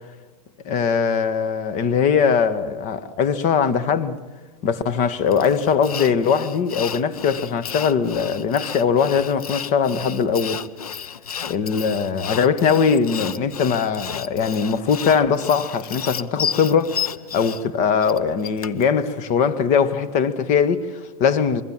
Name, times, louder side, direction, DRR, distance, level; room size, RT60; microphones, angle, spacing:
voice 1, 0.7-4.2 4.6-10.6 11.5-17.0 17.3-21.6, left 6 dB, 40° left, 1.6 m, -21 dB
Sawing, 5.3-18.9, left 7 dB, 90° left, 0.9 m, -32 dB
25.5 x 23.0 x 7.4 m
hypercardioid pair, 115°, 18 cm